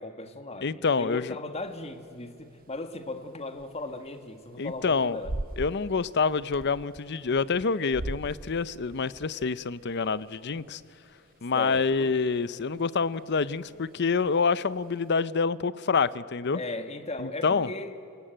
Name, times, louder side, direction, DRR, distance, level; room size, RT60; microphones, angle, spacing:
voice 1, 0.0-5.3 11.5-12.1 16.5-17.9, left 2 dB, 30° left, 8 dB, 1.6 m, -37 dB
voice 2, 0.6-1.4 4.6-5.2 5.6-10.8 11.4-16.6 17.2-17.7, left 5 dB, 55° left, 18 dB, 0.6 m, -27 dB
sound 1, 1.6-15.1, right 1 dB, 40° right, 0.8 m, -44 dB
29.5 x 19.5 x 9.0 m, 2.8 s
head